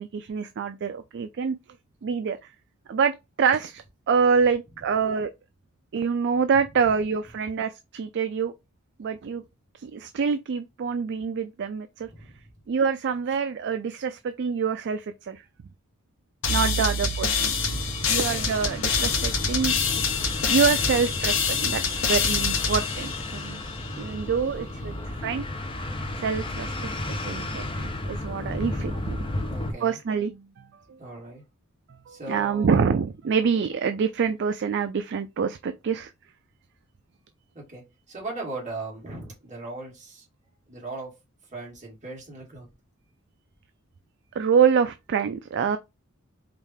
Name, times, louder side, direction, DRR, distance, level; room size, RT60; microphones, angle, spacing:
voice 1, 0.0-1.6 2.0-2.5 2.9-5.3 5.9-8.5 9.0-9.4 9.8-12.1 12.7-15.4 16.5-17.8 18.1-19.8 20.5-23.6 24.0-24.9 25.2-25.5 26.2-29.5 29.8-31.0 32.1-36.1 44.3-45.8, right 6 dB, 55° right, 0.4 m, -26 dB
voice 2, 4.4-5.0 6.6-6.9 12.0-12.4 16.5-17.2 18.0-18.6 22.7-22.8 24.8-25.4 29.4-30.0 31.0-31.4 32.1-32.9 37.5-40.3 40.7-41.2 41.5-42.7, right 2 dB, 35° right, 2.4 m, -40 dB
sound 1, 16.4-23.9, left 5 dB, 65° left, 1.0 m, -26 dB
sound 2, 17.4-29.7, left 1 dB, 25° left, 0.7 m, -33 dB
4.9 x 2.7 x 3.4 m
head